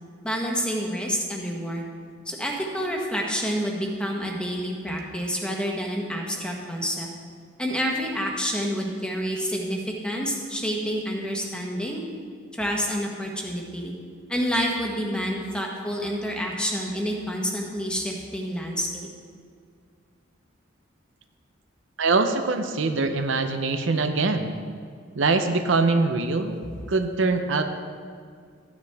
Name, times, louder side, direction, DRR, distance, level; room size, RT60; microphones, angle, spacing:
voice 1, 0.2-1.9 2.3-7.1 7.6-12.0 12.5-13.9 14.3-19.1, equal, 5° left, 0 dB, 1.2 m, -28 dB
voice 2, 22.0-24.5 25.2-26.6 26.9-27.6, right 3 dB, 70° right, 7 dB, 0.7 m, -23 dB
13.5 x 9.5 x 3.5 m, 2.1 s
head